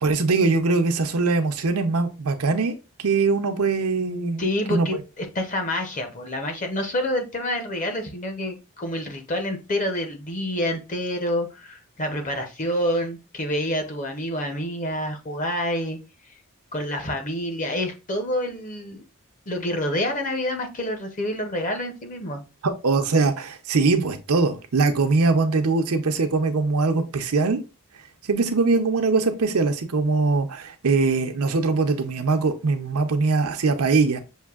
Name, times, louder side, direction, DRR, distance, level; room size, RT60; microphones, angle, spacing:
voice 1, 0.0-4.4 4.7-4.9 22.6-27.6 28.2-34.2, right 3 dB, 85° right, 0.7 m, -22 dB
voice 2, 4.4-16.0 16.7-19.1 19.5-22.4, left 1 dB, 35° left, 0.8 m, -28 dB
6.4 x 2.6 x 2.4 m
head